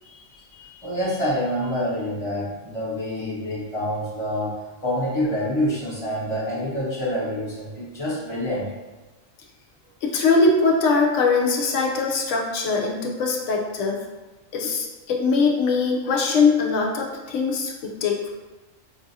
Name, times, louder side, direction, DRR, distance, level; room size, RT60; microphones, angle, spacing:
voice 1, 0.0-4.6 4.8-8.7, equal, 30° left, -7 dB, 0.9 m, -27 dB
voice 2, 10.0-14.0 14.5-18.3, left 4 dB, 70° left, 0 dB, 0.9 m, -21 dB
5.3 x 2.5 x 2.7 m, 1.2 s
omnidirectional pair, 1.4 m